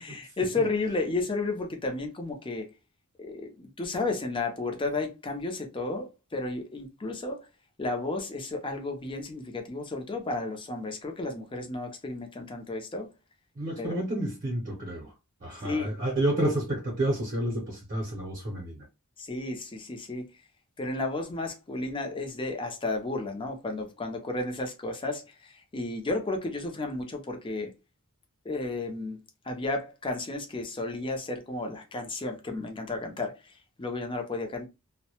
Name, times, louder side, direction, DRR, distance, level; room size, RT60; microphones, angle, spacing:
voice 1, 0.0-2.7 3.2-7.5 7.8-13.1 13.8-14.0 15.6-16.0 19.2-20.3 20.8-27.7 28.4-29.2 29.4-34.7, left 2 dB, 25° left, 0.5 m, -33 dB
voice 2, 13.6-15.1 15.4-18.9, right 1 dB, 40° right, 0.7 m, -30 dB
2.2 x 2.1 x 2.8 m
head